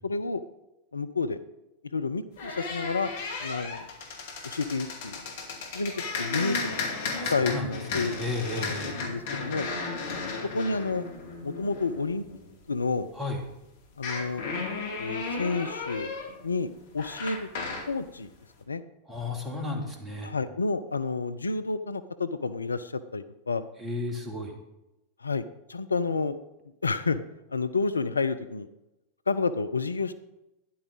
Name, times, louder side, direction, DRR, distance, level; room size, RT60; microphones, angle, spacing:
voice 1, 0.0-0.4 0.9-1.4 1.9-3.1 3.4-3.9 4.4-5.2 5.7-5.9 6.2-6.8 7.3-8.2 8.6-8.7 9.0-9.7 10.5-11.0 11.4-12.2 12.7-13.1 14.0-14.4 15.0-16.1 16.4-17.5 17.9-18.3 18.7-18.8 20.2-23.7 25.2-26.4 26.8-27.2 27.5-28.7 29.3-30.1, left 4 dB, 75° left, 12 dB, 0.5 m, -30 dB
sound 1, 2.4-12.8 13.9-17.9, left 4 dB, 55° left, 2.2 m, -35 dB
voice 2, 7.1-9.0 13.1-13.4 19.1-20.3 23.8-24.5, left 2 dB, 15° right, 1 dB, 2.7 m, -34 dB
12.5 x 10.0 x 4.0 m, 0.95 s
figure-of-eight pair, 90°, 0 cm